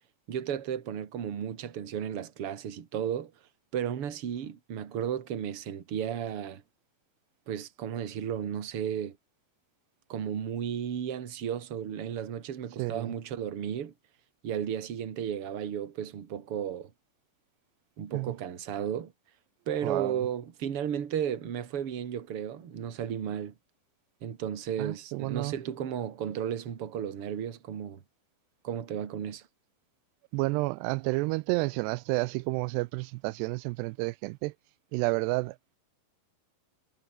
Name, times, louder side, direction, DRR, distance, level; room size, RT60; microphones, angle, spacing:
voice 1, 0.3-3.3 3.7-6.6 7.5-9.2 10.1-13.9 14.4-16.9 18.0-19.1 19.7-23.5 24.2-28.0 28.6-29.4, right 9 dB, 40° right, 2.5 m, -34 dB
voice 2, 12.8-13.1 18.1-18.3 19.8-20.2 24.8-25.5 30.3-34.5 34.9-35.8, right 23 dB, 90° right, 2.7 m, -30 dB
omnidirectional pair, 4.7 m